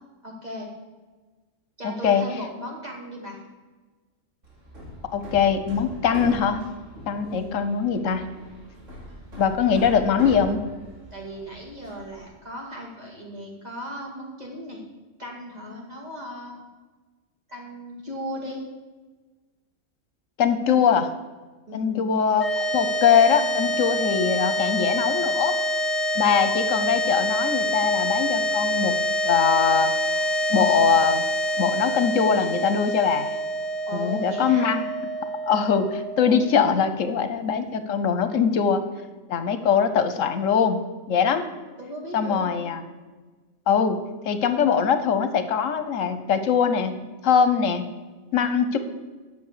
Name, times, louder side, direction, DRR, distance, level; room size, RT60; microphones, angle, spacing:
voice 1, 0.2-0.7 1.8-3.4 7.3-7.6 11.1-14.8 15.2-16.6 17.5-18.6 21.7-22.1 33.9-34.7 41.8-42.6, equal, 30° right, -2 dB, 2.3 m, -36 dB
voice 2, 1.8-2.2 5.1-6.6 7.1-8.3 9.3-10.6 20.4-21.1 21.7-22.5 22.7-25.5 26.1-29.0 29.2-29.9 30.2-31.2 31.6-33.3 33.9-34.8 35.5-38.9 39.3-40.8 41.1-41.4 42.1-42.8 43.7-47.9 48.3-48.8, left 7 dB, 80° left, 10 dB, 1.1 m, -22 dB
Hammer, 4.4-12.3, equal, 70° right, 2.7 m, -40 dB
sound 1, 22.3-36.8, equal, 30° left, 1.0 m, -26 dB
9.4 x 6.8 x 6.6 m, 1.3 s
omnidirectional pair, 1.4 m